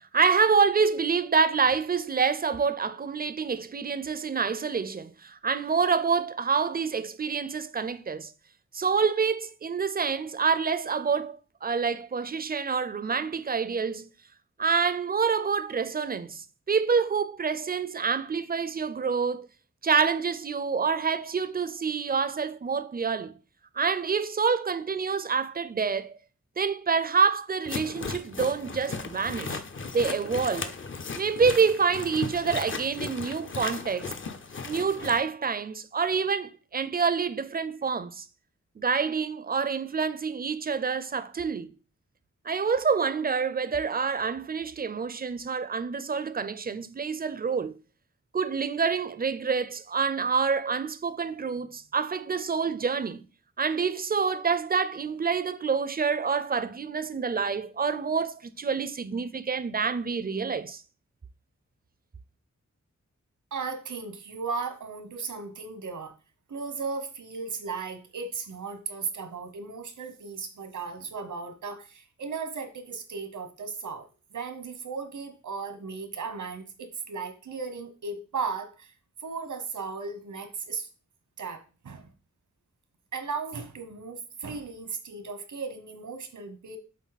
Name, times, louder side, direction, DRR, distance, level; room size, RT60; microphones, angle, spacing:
voice 1, 0.1-8.3 8.7-14.1 14.6-19.5 19.8-23.3 23.8-26.1 26.6-29.6 29.9-30.7 31.2-34.1 34.6-38.3 38.8-41.7 42.5-47.7 48.3-53.2 53.6-60.8, right 5 dB, 30° right, 0.5 m, -27 dB
sound 1, 27.7-35.2, left 4 dB, 40° left, 0.7 m, -36 dB
voice 2, 63.5-66.1 66.5-78.9 79.2-80.9 81.4-82.1 83.1-86.8, right 4 dB, 85° right, 1.3 m, -36 dB
7.3 x 4.0 x 4.1 m
wide cardioid pair, 80°, 30 cm